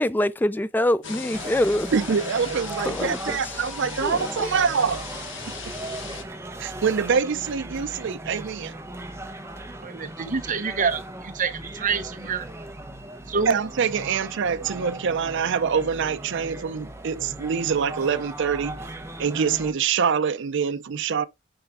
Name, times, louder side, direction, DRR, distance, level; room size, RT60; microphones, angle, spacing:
voice 1, 0.0-1.9 2.9-3.6 4.0-4.5, left 1 dB, 10° left, 0.3 m, -25 dB
sound 1, 1.0-6.2, left 6 dB, 65° left, 1.4 m, -38 dB
sound 2, 1.3-19.7, right 1 dB, 15° right, 0.9 m, -38 dB
voice 2, 1.9-5.1 5.7-5.8 6.6-8.7 13.5-18.8 19.2-21.2, right 6 dB, 60° right, 0.5 m, -25 dB
voice 3, 9.8-12.4 13.3-13.6, right 5 dB, 40° right, 0.9 m, -27 dB
9.8 x 3.5 x 3.6 m
head